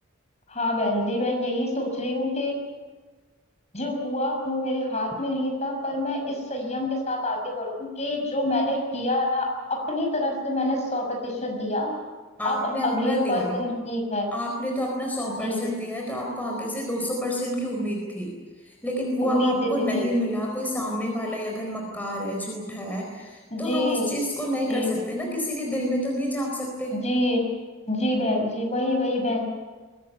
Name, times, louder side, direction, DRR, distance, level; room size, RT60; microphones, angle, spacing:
voice 1, 0.5-2.6 3.7-12.0 12.4-14.3 15.4-15.6 19.2-20.0 23.5-24.1 24.7-24.9 26.9-27.5 27.9-29.5, left 1 dB, 35° left, 2 dB, 6.2 m, -26 dB
voice 2, 12.4-13.6 14.3-18.3 18.6-27.0, equal, 10° left, -1 dB, 4.3 m, -29 dB
22.5 x 19.0 x 9.5 m, 1.3 s
head